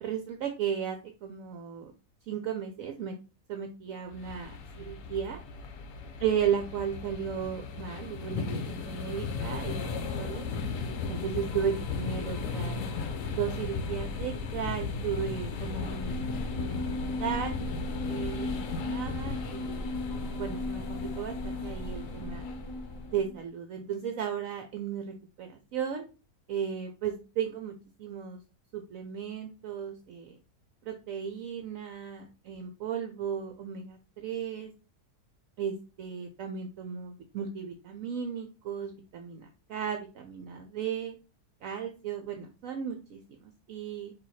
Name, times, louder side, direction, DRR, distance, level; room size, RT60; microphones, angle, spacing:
voice 1, 0.0-1.9 2.3-3.1 3.5-5.4 6.2-10.5 11.1-12.8 13.3-16.2 16.6-16.9 17.2-17.6 18.0-18.6 18.8-22.5 23.1-26.0 26.5-27.7 28.0-28.4 28.7-30.4 30.8-34.7 35.6-41.2 41.6-44.1, right 8 dB, 65° right, 5 dB, 1.0 m, -35 dB
sound 1, 4.1-23.2, left 4 dB, 65° left, 0.9 m, -36 dB
sound 2, 15.6-23.4, left 2 dB, 30° left, 0.6 m, -36 dB
4.6 x 2.7 x 4.1 m, 0.32 s
omnidirectional pair, 1.6 m